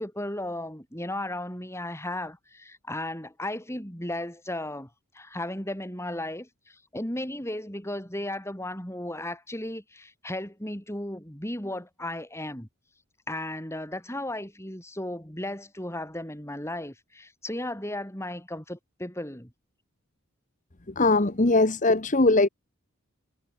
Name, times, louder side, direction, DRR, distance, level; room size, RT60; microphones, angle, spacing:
voice 1, 0.0-4.9 5.1-12.7 13.3-19.5, left 1 dB, 10° left, 5.4 m, -35 dB
voice 2, 21.0-22.5, left 2 dB, 35° left, 1.2 m, -20 dB
head